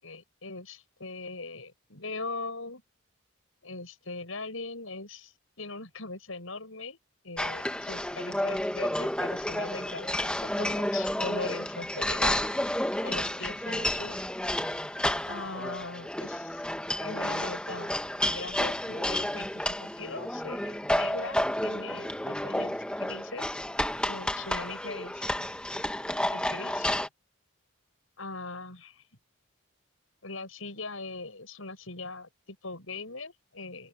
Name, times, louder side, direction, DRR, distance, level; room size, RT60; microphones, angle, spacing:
voice 1, 0.0-2.8 3.6-5.3 5.6-7.0 7.2-12.4 13.0-14.2 15.3-16.6 17.0-23.7 24.1-25.4 26.3-26.9 28.2-29.0 30.2-33.9, left 3 dB, 75° left, 6.6 m, -40 dB
sound 1, 7.4-27.1, left 1 dB, 5° left, 1.1 m, -31 dB
open air
head